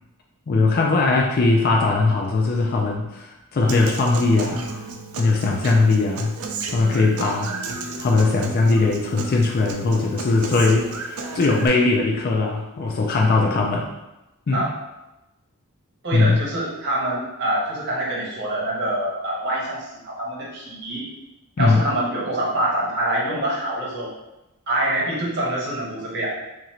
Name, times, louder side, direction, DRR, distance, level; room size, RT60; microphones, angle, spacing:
voice 1, 0.5-4.7 5.2-6.3 6.7-7.5 8.0-13.9 14.5-14.7 16.1-16.4 21.6-21.9, left 3 dB, 45° left, -1 dB, 0.4 m, -20 dB
Human voice / Acoustic guitar, 3.7-11.7, right 3 dB, 75° right, 0.5 m, -33 dB
voice 2, 16.0-21.0 21.6-24.1 24.7-26.3, right 1 dB, 50° right, -5 dB, 1.2 m, -25 dB
2.9 x 2.6 x 4.2 m, 0.97 s
head